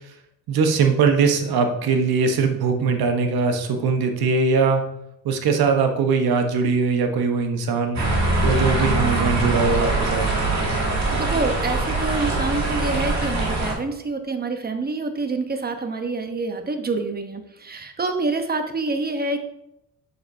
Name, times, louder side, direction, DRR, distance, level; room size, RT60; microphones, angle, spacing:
voice 1, 0.5-4.8 5.2-8.0 8.4-10.3, right 5 dB, 70° right, 5 dB, 1.1 m, -21 dB
sound 1, 7.9-13.7, right 2 dB, 45° right, 2.2 m, -22 dB
voice 2, 10.9-19.4, right 3 dB, 25° right, 6 dB, 1.0 m, -27 dB
6.8 x 6.4 x 2.7 m, 0.81 s
cardioid pair, 80°, 38 cm